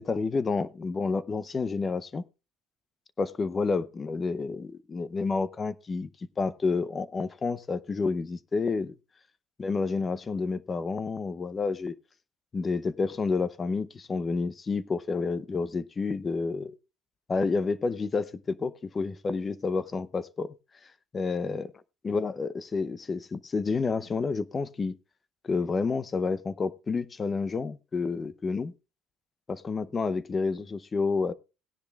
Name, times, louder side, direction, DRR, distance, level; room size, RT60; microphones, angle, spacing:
voice 1, 0.0-2.2 3.2-6.1 6.4-8.9 9.6-12.0 12.5-16.7 17.3-20.5 21.1-21.7 22.0-25.0 25.4-28.7 29.5-31.3, left 4 dB, 20° left, 0.6 m, -29 dB
17.5 x 10.0 x 2.3 m
cardioid pair, 150°, 0 cm